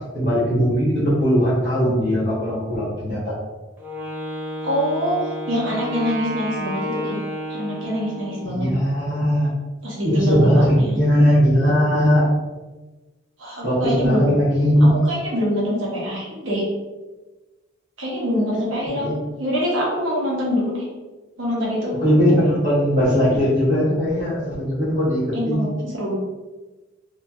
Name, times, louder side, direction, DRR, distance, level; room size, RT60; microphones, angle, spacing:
voice 1, 0.1-3.3 8.4-9.5 10.0-12.3 13.6-15.0 19.0-19.1 22.0-25.2 25.5-25.6, equal, 40° right, -12 dB, 1.0 m, -19 dB
Wind instrument woodwind instrument, 3.8-8.6, equal, 10° right, 0.4 m, -31 dB
voice 2, 4.6-5.2 5.5-7.2 7.5-8.7 9.8-11.0 13.4-14.3 14.8-16.6 18.0-20.9 21.4-21.9 25.3-26.1, equal, 70° right, -4 dB, 0.9 m, -25 dB
2.8 x 2.3 x 2.6 m, 1.2 s
head